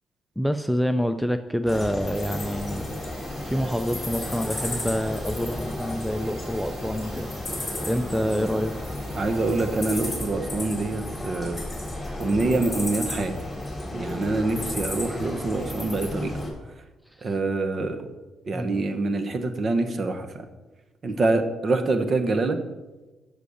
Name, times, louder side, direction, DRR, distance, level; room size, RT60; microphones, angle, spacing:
voice 1, 0.4-2.8 3.4-7.3 7.8-8.7 17.2-17.3 18.5-18.8, equal, ahead, 9 dB, 0.5 m, -27 dB
sound 1, 1.7-16.5, left 1 dB, 15° left, 3.4 m, -33 dB
sound 2, 2.1-10.1, right 1 dB, 70° right, 3.7 m, -44 dB
voice 2, 9.1-11.6 12.2-13.3 13.9-16.3 17.2-18.1 18.5-20.4 21.0-22.6, right 3 dB, 45° right, 8 dB, 1.2 m, -25 dB
8.2 x 6.4 x 6.5 m, 1.1 s
cardioid pair, 90°, 0 cm